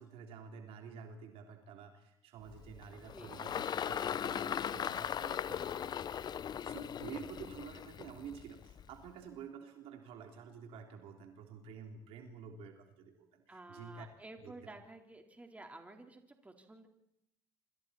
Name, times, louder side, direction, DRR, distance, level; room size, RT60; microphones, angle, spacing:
voice 1, 0.0-6.3 6.6-14.1 14.4-14.7, right 7 dB, 60° right, 4 dB, 3.5 m, -50 dB
Engine, 2.5-9.1, left 8 dB, 40° left, 0.9 m, -39 dB
voice 2, 3.1-3.6 13.5-16.9, right 2 dB, 15° right, 4 dB, 4.2 m, -52 dB
26.5 x 26.0 x 4.4 m, 0.78 s
hypercardioid pair, 70°, 11 cm